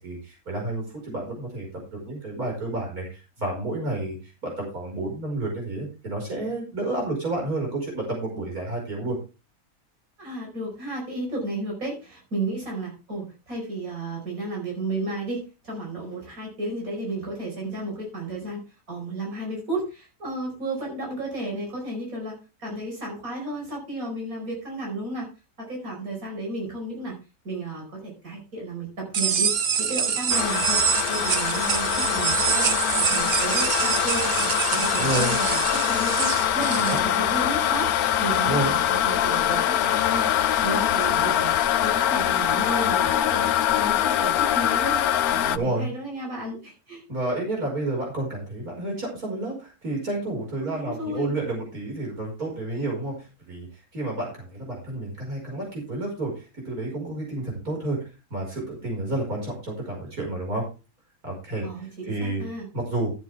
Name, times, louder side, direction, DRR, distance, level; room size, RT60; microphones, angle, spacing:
voice 1, 0.0-1.7 1.9-9.2 35.0-35.4 36.9-37.0 38.4-38.7 45.5-45.9 47.1-53.7 53.9-58.0 58.3-60.6 61.2-61.6 62.1-62.4 62.7-63.1, right 2 dB, 90° right, -1 dB, 5.8 m, -30 dB
voice 2, 10.2-18.6 18.9-22.3 22.6-25.3 25.6-27.2 27.4-30.8 31.1-32.7 33.0-41.5 41.8-43.5 43.7-45.0 45.3-47.0 50.6-51.3 61.6-62.7, right 2 dB, 70° right, -1 dB, 5.6 m, -33 dB
sound 1, 29.1-37.0, right 7 dB, 50° right, 0.9 m, -25 dB
sound 2, 30.3-45.6, left 11 dB, 85° left, 1.2 m, -23 dB
13.0 x 9.1 x 3.5 m, 0.30 s
omnidirectional pair, 1.5 m